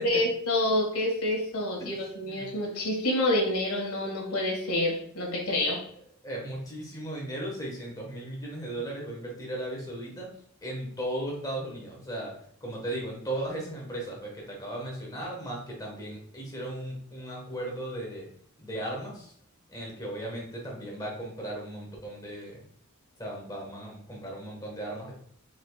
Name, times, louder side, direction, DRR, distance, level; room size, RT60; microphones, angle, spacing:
voice 1, 0.0-5.8, left 1 dB, 90° left, 0 dB, 1.6 m, -27 dB
voice 2, 1.8-2.5 6.2-10.3 10.6-12.3 12.6-18.3 18.6-19.3 19.7-22.6 23.2-25.2, right 1 dB, 15° left, -2 dB, 1.4 m, -36 dB
5.0 x 4.2 x 2.3 m, 0.63 s
head